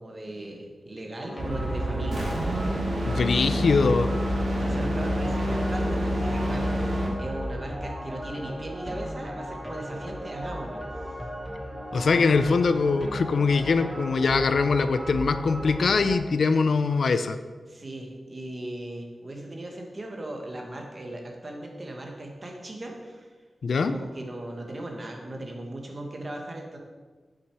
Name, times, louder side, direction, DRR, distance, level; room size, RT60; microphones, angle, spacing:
voice 1, 0.0-2.3 4.6-11.1 11.9-12.4 17.7-23.3 23.7-26.8, right 1 dB, 30° right, 1 dB, 1.6 m, -38 dB
sound 1, 1.2-16.1, equal, 10° right, 1.4 m, -36 dB
sound 2, 1.4-7.2, equal, 75° right, 2.4 m, -27 dB
voice 2, 3.1-4.1 11.9-17.4 23.6-23.9, left 4 dB, 75° left, 10 dB, 0.5 m, -22 dB
8.3 x 8.1 x 4.7 m, 1.4 s
wide cardioid pair, 145°, 0 cm